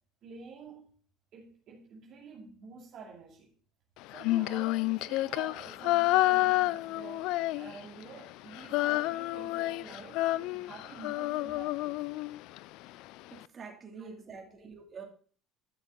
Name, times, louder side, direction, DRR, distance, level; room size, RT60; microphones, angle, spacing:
voice 1, 0.2-0.9 1.3-3.5 4.1-12.0 14.0-14.4, right 5 dB, 55° right, 2.6 m, -49 dB
Female singing, 4.1-8.0 8.3-12.6, left 18 dB, 70° left, 0.4 m, -29 dB
voice 2, 13.3-15.0, right 5 dB, 35° right, 3.0 m, -46 dB
13.0 x 6.4 x 3.9 m
supercardioid pair, 85°, 0 cm